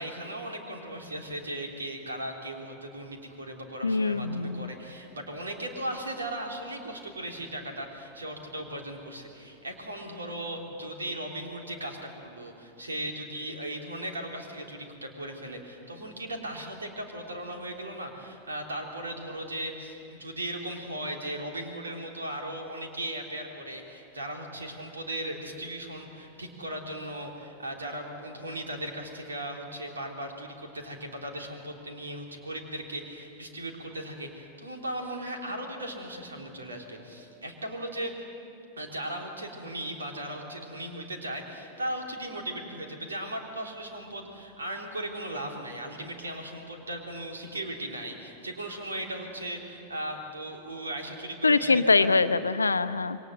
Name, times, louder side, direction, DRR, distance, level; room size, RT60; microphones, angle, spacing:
voice 1, 0.0-38.1 38.8-52.2, right 1 dB, 75° right, 1 dB, 3.5 m, -37 dB
voice 2, 3.8-4.7 51.4-53.2, left 3 dB, 80° left, 12 dB, 0.8 m, -23 dB
27.0 x 23.0 x 7.7 m, 2.8 s
figure-of-eight pair, 90°, 0 cm